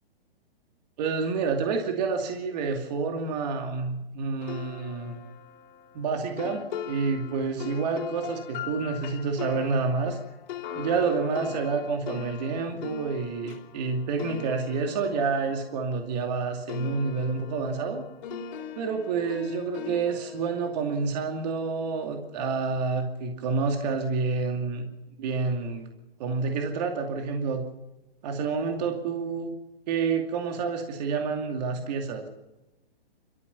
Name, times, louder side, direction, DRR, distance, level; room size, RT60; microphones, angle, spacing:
voice 1, 1.0-5.2 5.9-10.2 10.7-18.0 18.8-24.8 25.2-25.9 26.2-27.7 28.2-29.5 29.9-32.3, right 4 dB, 45° right, 3 dB, 2.6 m, -28 dB
sound 1, 4.4-16.4 16.7-21.9, left 8 dB, 45° left, 4.2 m, -41 dB
28.5 x 14.0 x 7.1 m, 1.0 s
hypercardioid pair, 150°, 30 cm